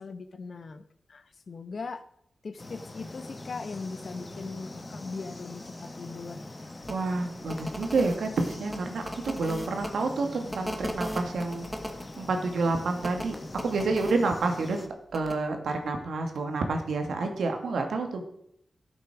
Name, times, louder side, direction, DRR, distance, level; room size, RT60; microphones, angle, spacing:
voice 1, 0.0-2.1 2.4-6.4, left 4 dB, 50° left, 11 dB, 1.0 m, -39 dB
sound 1, 2.6-14.9, left 2 dB, 25° left, 1.3 m, -43 dB
sound 2, 6.8-6.9 7.4-9.9 10.5-12.0 13.0-14.1 15.1-15.3, equal, 5° left, 1.6 m, -37 dB
voice 2, 6.9-11.7 12.2-13.4 13.6-14.8 15.1-18.2, right 3 dB, 90° right, 4 dB, 2.4 m, -29 dB
15.0 x 8.1 x 6.3 m, 0.70 s
wide cardioid pair, 145°, 0 cm